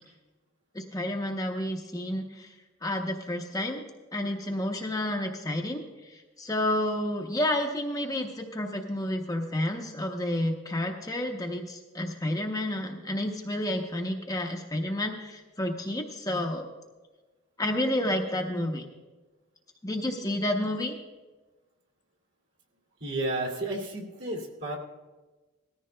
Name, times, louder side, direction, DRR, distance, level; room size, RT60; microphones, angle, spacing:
voice 1, 0.7-2.5 2.8-3.8 4.1-16.7 17.6-18.8 19.8-21.0, left 1 dB, 15° left, 2 dB, 0.7 m, -30 dB
voice 2, 23.0-24.8, right 2 dB, 60° right, 0 dB, 2.3 m, -32 dB
18.0 x 14.0 x 2.2 m, 1.2 s
head